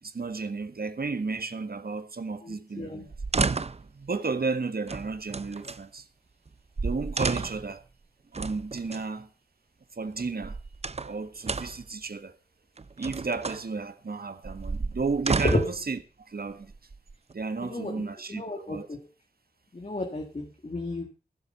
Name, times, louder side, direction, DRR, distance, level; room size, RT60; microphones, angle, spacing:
voice 1, 0.0-3.1 3.8-6.1 6.8-7.8 8.3-9.3 9.9-10.6 11.0-12.3 13.0-16.0 16.3-16.7 17.3-18.9, right 4 dB, 65° right, 1.5 m, -33 dB
voice 2, 2.4-3.1 15.5-15.6 17.6-19.1 19.7-21.1, left 2 dB, 45° left, 2.0 m, -33 dB
sound 1, 3.1-3.9 4.9-5.8 6.5-6.6 6.8-7.7 8.3-9.0 10.2-11.1 11.4-11.9 12.8-13.6 14.4-15.8 16.6-17.3, right 4 dB, 40° right, 0.6 m, -32 dB
15.0 x 7.7 x 5.4 m
wide cardioid pair, 55°, 17 cm